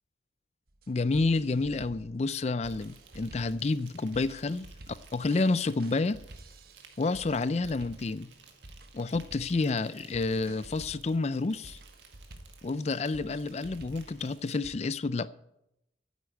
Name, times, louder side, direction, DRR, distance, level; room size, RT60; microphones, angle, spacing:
sound 1, 0.7-14.7, right 1 dB, 55° right, 1.1 m, -51 dB
voice 1, 0.9-6.2 7.0-8.3 8.9-11.8 12.6-15.3, left 3 dB, 35° left, 0.4 m, -29 dB
Insect, 2.6-14.6, right 5 dB, 85° right, 1.8 m, -57 dB
9.7 x 8.2 x 9.0 m
head